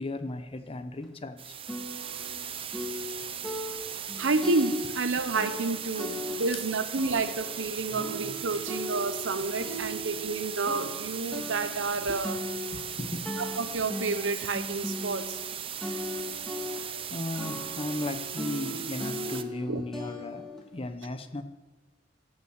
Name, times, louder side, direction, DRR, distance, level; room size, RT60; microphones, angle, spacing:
voice 1, 0.0-1.6 6.5-6.6 7.9-8.0 12.0-12.2 12.7-13.3 16.3-16.5 17.1-21.4, left 2 dB, 30° left, 10 dB, 0.7 m, -36 dB
sound 1, 1.0-1.1 1.7-2.4 2.7-5.1 5.4-6.7 7.0-10.4 10.7-15.5 15.8-17.1 17.4-20.6, left 1 dB, 5° left, 1.7 m, -38 dB
sound 2, 1.4-19.4, right 8 dB, 30° right, 0.5 m, -38 dB
voice 2, 3.9-12.4 13.4-15.4 16.9-17.5 19.7-19.8, right 3 dB, 85° right, 11 dB, 0.8 m, -30 dB
16.0 x 5.7 x 6.5 m, 1.3 s
head